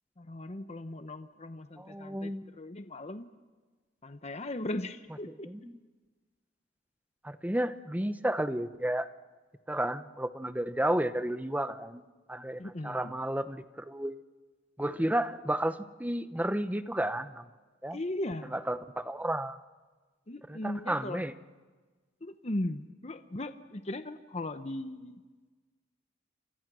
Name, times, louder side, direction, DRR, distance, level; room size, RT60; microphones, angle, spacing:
voice 1, 0.2-2.3 2.6-3.3 4.0-5.5 12.6-13.1 17.9-18.5 20.3-21.2 22.2-25.2, left 1 dB, 35° left, 9 dB, 0.9 m, -38 dB
voice 2, 1.8-2.5 5.3-5.7 7.2-9.1 9.7-12.0 12.3-14.2 14.8-17.5 17.8-18.0 18.4-19.6 20.5-21.3, right 1 dB, 10° right, 11 dB, 0.9 m, -32 dB
30.0 x 26.5 x 6.2 m, 1.3 s
head